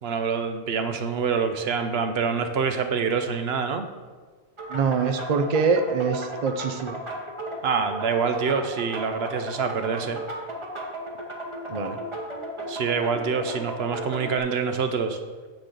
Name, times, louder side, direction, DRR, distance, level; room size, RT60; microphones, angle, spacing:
voice 1, 0.0-3.9 7.6-10.2 12.7-15.2, right 5 dB, 70° right, 7 dB, 0.9 m, -26 dB
sound 1, 4.6-14.4, equal, 30° right, 1.1 m, -35 dB
voice 2, 4.7-7.0 11.7-12.0, right 5 dB, 45° right, 6 dB, 0.6 m, -24 dB
9.1 x 3.8 x 6.6 m, 1.4 s
omnidirectional pair, 1.1 m